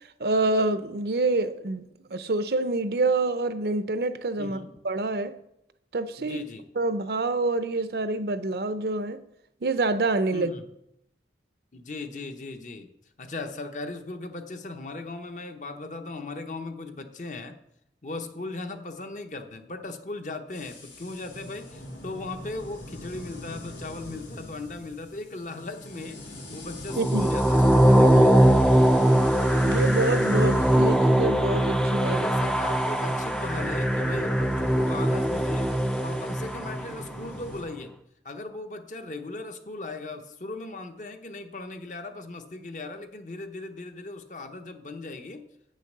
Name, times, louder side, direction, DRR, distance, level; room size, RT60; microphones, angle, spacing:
voice 1, 0.2-4.6 4.8-5.3 5.9-6.4 6.8-9.2 9.6-10.5 27.0-27.3 29.6-32.2, right 2 dB, 65° right, 12 dB, 0.6 m, -26 dB
voice 2, 4.4-4.7 6.2-6.7 10.3-10.6 11.7-12.9 13.2-17.6 18.0-28.4 32.1-35.7 36.0-37.9 38.2-45.5, left 2 dB, 45° left, 7 dB, 0.8 m, -38 dB
sound 1, 20.5-37.6, left 1 dB, 90° left, 2.9 m, -43 dB
sound 2, 26.9-37.0, right 1 dB, 5° left, 0.4 m, -21 dB
8.2 x 6.5 x 6.6 m, 0.79 s
head